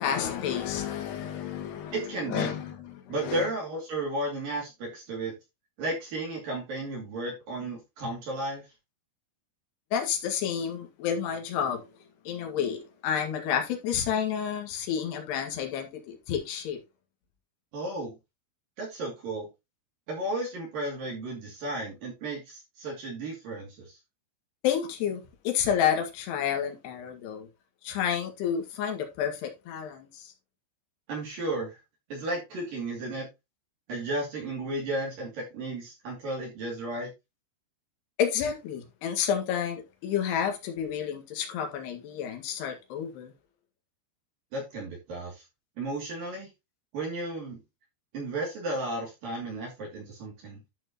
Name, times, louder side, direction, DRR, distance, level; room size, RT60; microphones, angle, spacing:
voice 1, 0.0-3.5 9.9-11.9 12.3-16.8 24.6-27.5 27.8-30.3 38.2-43.3, left 8 dB, 65° left, 3.7 m, -30 dB
voice 2, 1.9-2.5 3.1-5.3 5.8-8.6 17.7-18.1 18.8-19.5 20.1-24.0 31.1-31.8 32.1-33.3 33.9-37.1 44.5-45.4 45.8-46.5 46.9-47.6 48.1-50.6, right 2 dB, 50° right, 3.8 m, -33 dB
12.0 x 5.9 x 3.0 m
omnidirectional pair, 5.4 m